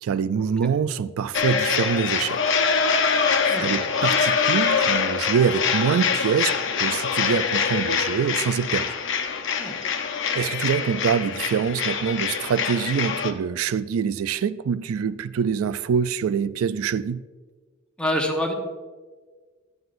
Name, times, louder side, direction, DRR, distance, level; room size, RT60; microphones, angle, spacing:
voice 1, 0.0-2.4 3.1-6.5 6.8-8.9 9.6-9.7 10.3-17.2, right 7 dB, 90° right, 0.3 m, -25 dB
sound 1, 1.3-13.3, left 6 dB, 60° left, 0.7 m, -24 dB
voice 2, 18.0-18.5, left 1 dB, 5° left, 1.0 m, -26 dB
11.5 x 9.3 x 2.5 m
head